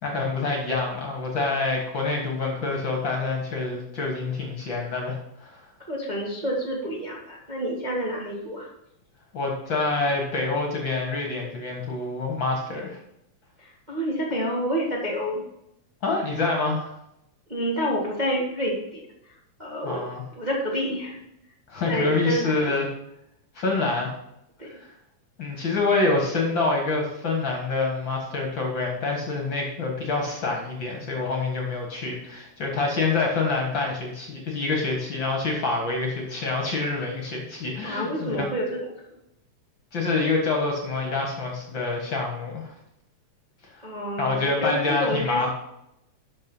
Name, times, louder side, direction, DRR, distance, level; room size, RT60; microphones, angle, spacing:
voice 1, 0.0-5.6 9.3-13.0 16.0-16.9 19.8-20.2 21.7-22.9 23.6-24.1 24.7-24.9 25.4-38.5 39.9-42.7 44.2-45.5, left 3 dB, 45° left, 1 dB, 1.9 m, -26 dB
voice 2, 5.9-8.7 13.6-15.4 17.5-19.0 19.6-20.0 20.3-21.2 21.8-22.5 24.6-24.7 37.8-38.8 43.8-45.5, equal, 20° right, -3 dB, 1.3 m, -28 dB
12.0 x 5.3 x 5.5 m, 0.82 s
omnidirectional pair, 3.5 m